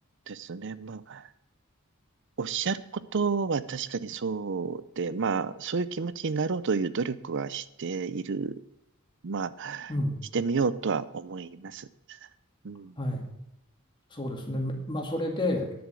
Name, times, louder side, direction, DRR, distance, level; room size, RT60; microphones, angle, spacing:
voice 1, 0.3-1.3 2.4-8.6 9.2-9.9 10.3-12.2 12.6-13.0, right 5 dB, 55° right, 16 dB, 0.6 m, -31 dB
voice 2, 9.9-10.2 13.0-13.3 14.1-15.7, left 1 dB, 20° left, 2 dB, 2.1 m, -30 dB
10.5 x 7.2 x 7.6 m, 0.86 s
head